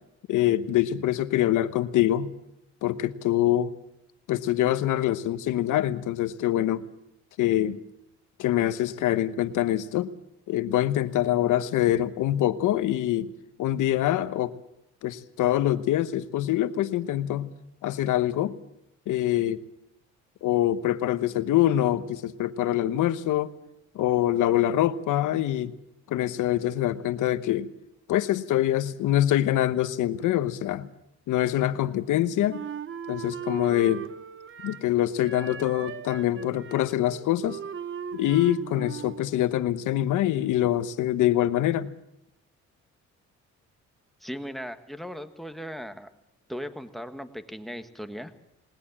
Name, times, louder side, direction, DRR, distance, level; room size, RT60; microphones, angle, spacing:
voice 1, 0.3-2.3 2.8-3.7 4.3-6.8 7.4-7.8 8.4-10.1 10.5-13.3 13.6-14.5 15.0-17.5 17.8-18.5 19.1-19.6 20.4-23.5 23.9-25.7 26.1-27.7 28.1-30.9 31.3-32.6 33.1-34.1 34.6-37.6 38.1-41.9, left 13 dB, 85° left, 13 dB, 1.1 m, -24 dB
Wind instrument woodwind instrument, 32.5-34.9 35.2-39.3, right 7 dB, 40° right, 0.9 m, -38 dB
voice 2, 44.2-46.1 46.5-48.3, equal, ahead, 9 dB, 1.6 m, -37 dB
20.0 x 19.5 x 7.3 m, 0.84 s
cardioid pair, 90°, 30 cm